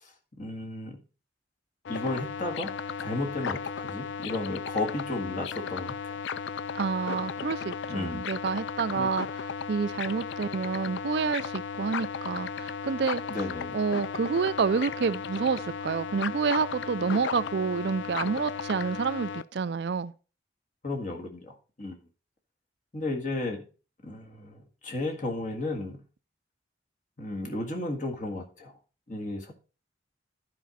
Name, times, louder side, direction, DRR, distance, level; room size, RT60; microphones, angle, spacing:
voice 1, 0.4-1.0 1.9-2.7 3.0-6.2 7.9-8.3 8.9-9.1 13.3-13.8 20.8-22.0 22.9-23.7 24.0-26.0 27.2-28.7 29.1-29.5, left 2 dB, 45° left, 1.8 m, -33 dB
sound 1, 1.8-19.4, left 6 dB, 80° left, 0.4 m, -35 dB
voice 2, 6.7-9.3 9.7-13.2 13.7-20.1, right 5 dB, 65° right, 0.4 m, -28 dB
11.5 x 5.1 x 4.2 m
head